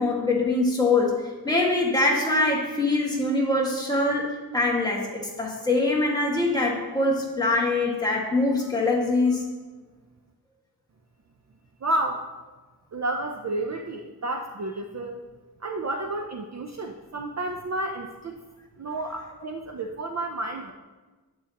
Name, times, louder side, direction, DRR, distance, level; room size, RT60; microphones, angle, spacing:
voice 1, 0.0-9.4, left 2 dB, 10° left, -3 dB, 1.7 m, -23 dB
voice 2, 11.8-12.2 12.9-15.2 15.6-18.4 18.8-20.7, right 2 dB, 40° right, 4 dB, 0.5 m, -31 dB
10.5 x 7.8 x 2.9 m, 1.3 s
wide cardioid pair, 150°, 40 cm